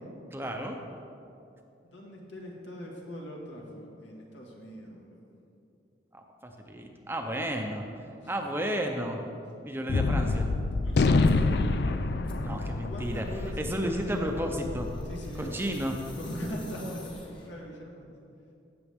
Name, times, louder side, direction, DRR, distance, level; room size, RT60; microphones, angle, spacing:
voice 1, 0.3-0.8 6.1-7.8 8.3-9.2 9.6-10.5 12.4-14.9 15.4-16.0, equal, 10° right, 3 dB, 0.6 m, -32 dB
voice 2, 1.8-5.2 10.8-11.0 12.6-14.3 15.1-15.5 16.2-18.1, equal, 75° left, -2 dB, 1.8 m, -41 dB
Gunshot gunfire, 9.9-16.5, left 3 dB, 60° left, 0.4 m, -28 dB
sound 1, 11.2-11.5 12.2-17.7, left 2 dB, 25° left, 1.1 m, -50 dB
15.5 x 6.9 x 3.6 m, 2.7 s
head